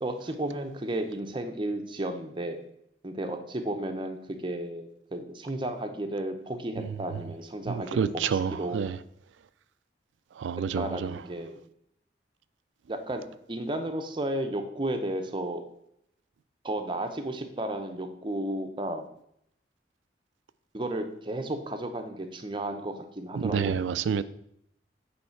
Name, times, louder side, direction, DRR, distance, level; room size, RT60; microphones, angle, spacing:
voice 1, 0.0-2.7 3.0-8.8 10.8-11.6 12.9-13.2 13.5-15.6 16.6-19.1 20.7-23.9, right 1 dB, 25° right, 0.6 m, -33 dB
voice 2, 7.7-9.0 10.4-11.1 23.4-24.2, right 6 dB, 90° right, 0.3 m, -29 dB
8.2 x 3.2 x 4.5 m
head